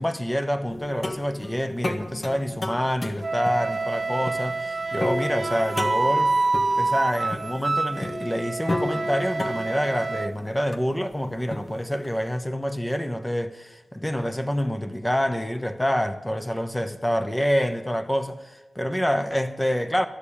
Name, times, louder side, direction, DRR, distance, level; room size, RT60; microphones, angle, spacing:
voice 1, 0.0-6.3 6.8-20.1, equal, 10° left, 1.0 m, -27 dB
sound 1, 0.7-12.2, left 1 dB, 40° left, 1.5 m, -34 dB
Wind instrument woodwind instrument, 3.2-10.3, right 3 dB, 40° right, 0.5 m, -27 dB
13.5 x 10.5 x 8.6 m
wide cardioid pair, 75°, 0 cm